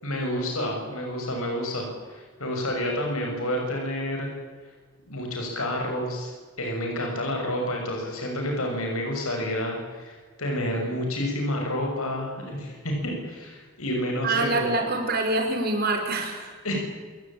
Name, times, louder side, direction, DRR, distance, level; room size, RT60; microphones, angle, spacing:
voice 1, 0.0-4.3 5.1-6.3 6.6-14.8 16.6-16.8, left 1 dB, 90° left, 1 dB, 6.3 m, -29 dB
voice 2, 14.2-16.6, right 2 dB, 45° right, 3 dB, 5.3 m, -25 dB
28.0 x 17.5 x 8.9 m, 1.5 s
head